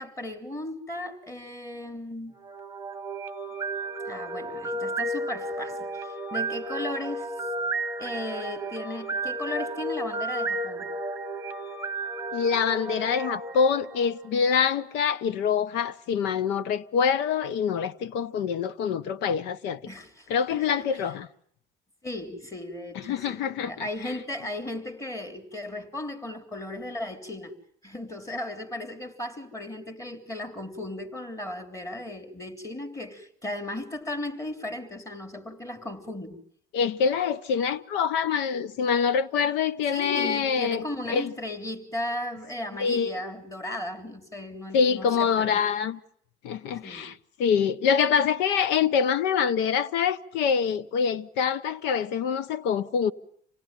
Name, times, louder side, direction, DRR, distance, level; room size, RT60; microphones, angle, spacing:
voice 1, 0.0-2.4 4.1-7.3 8.0-10.9 19.9-21.1 22.0-27.5 27.8-36.4 39.9-45.6 46.8-47.0, left 1 dB, 15° left, 3.4 m, -36 dB
sound 1, 2.4-14.5, right 2 dB, 15° right, 1.2 m, -33 dB
voice 2, 12.3-19.8 20.3-21.3 23.0-23.7 36.7-41.3 42.8-43.1 44.7-46.0 46.4-53.1, left 7 dB, 80° left, 1.0 m, -25 dB
27.0 x 18.5 x 9.0 m
cardioid pair, 105°, 18 cm